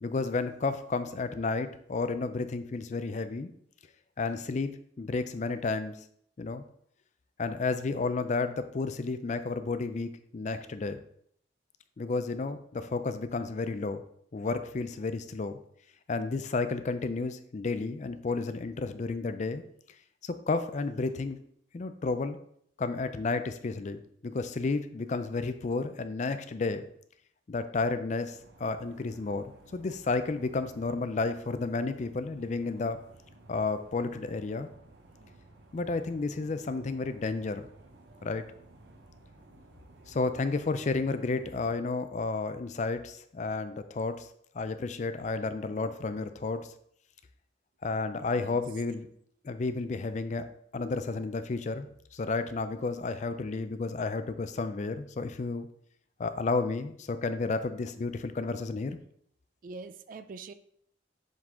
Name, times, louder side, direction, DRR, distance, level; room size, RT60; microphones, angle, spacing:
voice 1, 0.0-3.5 4.2-6.0 6.4-6.6 7.4-11.0 12.0-14.0 14.3-15.6 16.1-19.6 20.2-21.4 21.7-22.4 22.8-26.9 27.5-33.0 33.5-34.7 35.7-37.7 38.2-38.4 40.1-44.3 44.5-46.7 47.8-49.1 49.4-50.4 50.7-55.7 56.2-59.0, left 3 dB, 40° left, 11 dB, 0.4 m, -32 dB
sound 1, 28.3-41.8, right 2 dB, 65° right, 0.9 m, -56 dB
voice 2, 48.1-48.6 59.6-60.5, right 4 dB, 45° right, 12 dB, 0.3 m, -44 dB
7.3 x 3.9 x 3.6 m, 0.67 s
head